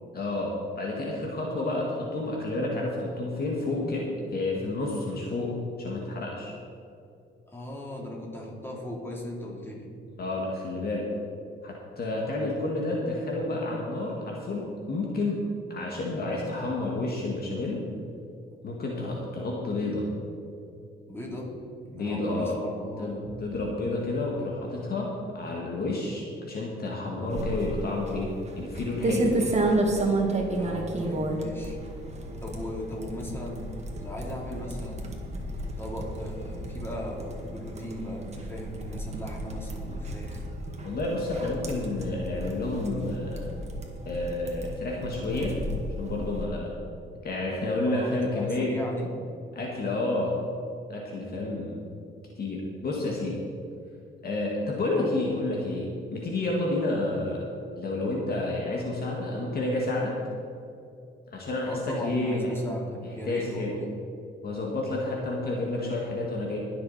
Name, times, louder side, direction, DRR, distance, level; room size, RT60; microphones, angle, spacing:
voice 1, 0.1-6.5 10.2-11.1 11.6-15.4 15.7-17.8 18.6-20.1 21.9-22.5 23.0-25.1 25.3-29.5 40.8-43.5 44.1-45.6 46.0-46.7 47.2-48.7 49.5-50.4 50.9-51.8 52.4-53.4 54.2-57.4 57.8-60.2 61.3-62.5 63.3-63.7 64.4-66.6, left 2 dB, 50° left, -2 dB, 2.0 m, -30 dB
voice 2, 7.5-9.9 18.5-18.6 21.1-21.5 21.9-23.4 30.5-31.8 32.4-33.7 34.0-35.3 35.8-40.4 47.8-49.1 61.7-63.9, equal, 10° left, -3 dB, 3.3 m, -37 dB
sound 1, 27.3-46.4, right 2 dB, 35° right, 1.9 m, -32 dB
20.5 x 6.8 x 4.3 m, 2.6 s
cardioid pair, 90°, 20 cm